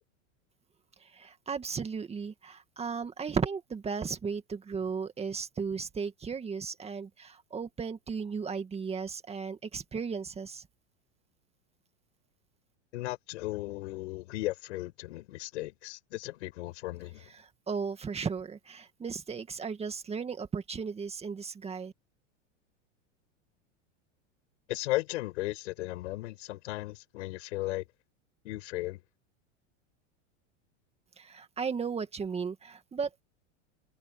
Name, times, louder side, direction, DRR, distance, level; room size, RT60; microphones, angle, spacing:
voice 1, 1.1-10.6 17.7-21.9 31.2-33.2, right 5 dB, 15° right, 2.1 m, -35 dB
voice 2, 12.9-17.3 24.7-27.9 28.4-29.0, left 18 dB, 70° left, 6.7 m, -36 dB
supercardioid pair, 135°, 37 cm